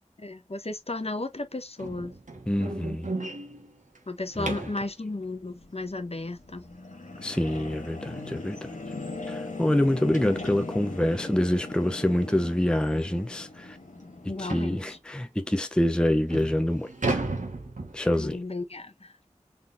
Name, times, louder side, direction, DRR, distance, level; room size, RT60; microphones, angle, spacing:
voice 1, 0.2-2.1 4.1-6.6 14.3-15.0 18.2-19.3, left 2 dB, 50° left, 0.9 m, -34 dB
sound 1, 1.8-4.9 7.7-7.8 8.3-8.5 8.8-8.9 9.4-9.5 10.6-10.7 11.1-11.3 11.9-12.0 12.4-12.5 13.0-13.1 14.5-14.8 15.5-15.6 16.1-18.4, right 2 dB, 85° right, 1.3 m, -34 dB
voice 2, 2.5-3.1 4.4-4.6 7.2-8.7 9.3-13.8 14.2-17.2 17.9-18.4, left 1 dB, 5° left, 0.5 m, -26 dB
sound 2, 5.2-15.0, left 2 dB, 85° left, 1.6 m, -39 dB
4.1 x 3.6 x 2.5 m
wide cardioid pair, 40°, 13 cm